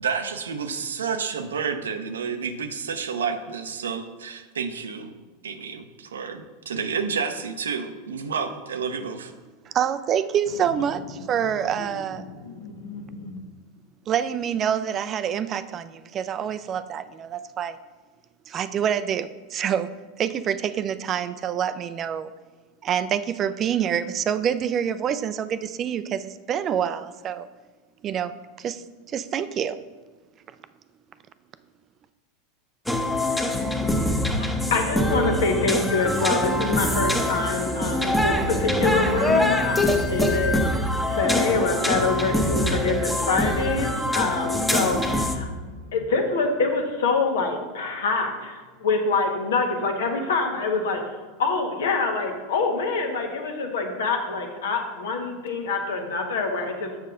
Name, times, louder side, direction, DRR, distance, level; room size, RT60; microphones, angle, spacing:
voice 1, 0.0-5.1 5.4-9.3, right 6 dB, 80° right, 8 dB, 0.6 m, -30 dB
voice 2, 9.7-12.3 14.1-17.8 18.5-19.9 20.2-22.3 22.8-27.5 28.0-28.3 28.6-29.8, right 8 dB, 35° right, 13 dB, 0.4 m, -26 dB
voice 3, 12.2-13.4 34.1-40.6 41.0-57.1, left 3 dB, 75° left, 3 dB, 1.3 m, -26 dB
sound 1, 32.9-45.4, left 1 dB, 5° left, 0.9 m, -24 dB
7.1 x 6.4 x 3.8 m, 1.3 s
hypercardioid pair, 90°, 0 cm